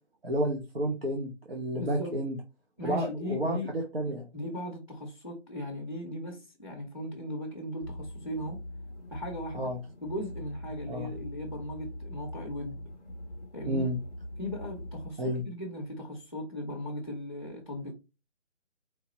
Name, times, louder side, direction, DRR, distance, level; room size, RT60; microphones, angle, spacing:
voice 1, 0.2-2.4 2.8-4.3 9.5-9.8 10.9-11.1 13.7-14.0 15.2-15.4, right 1 dB, 55° right, 0.9 m, -31 dB
voice 2, 1.7-2.2 2.8-3.7 4.3-8.6 9.1-9.7 10.0-12.8 13.5-13.9 14.4-17.9, equal, 30° left, 0.6 m, -38 dB
sound 1, 7.8-15.1, left 1 dB, 15° right, 1.3 m, -42 dB
4.6 x 3.1 x 2.9 m
hypercardioid pair, 175°, 36 cm